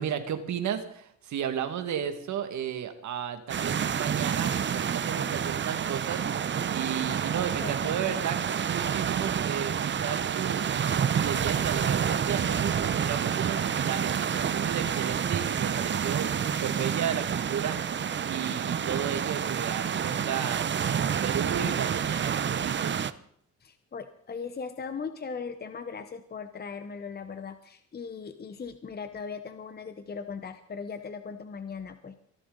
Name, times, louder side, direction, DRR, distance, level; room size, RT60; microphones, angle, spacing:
voice 1, 0.0-10.7 11.1-17.9 18.2-20.8 21.2-23.0, right 8 dB, 70° right, 8 dB, 2.0 m, -34 dB
Waves On Rocks Tasmania, 3.5-23.1, right 8 dB, 40° right, 0.7 m, -28 dB
voice 2, 7.6-8.2 23.6-32.2, left 5 dB, 30° left, 9 dB, 1.0 m, -39 dB
23.0 x 11.5 x 4.0 m, 0.65 s
cardioid pair, 90°, 30 cm